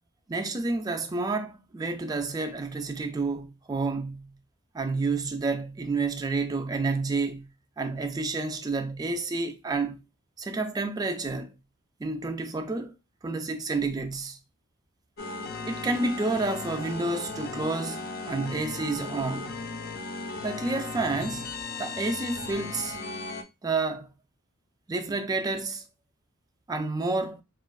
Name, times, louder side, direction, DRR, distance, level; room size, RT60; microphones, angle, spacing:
voice 1, 0.3-4.3 4.7-7.4 7.8-10.0 10.4-11.6 12.0-12.9 13.2-14.4 15.7-19.6 20.4-21.5 21.8-23.0 23.6-24.1 24.9-25.8 26.7-27.4, right 3 dB, 20° right, 0.4 m, -29 dB
sound 1, 15.2-23.4, left 3 dB, 50° left, 0.5 m, -36 dB
4.3 x 2.1 x 2.3 m
head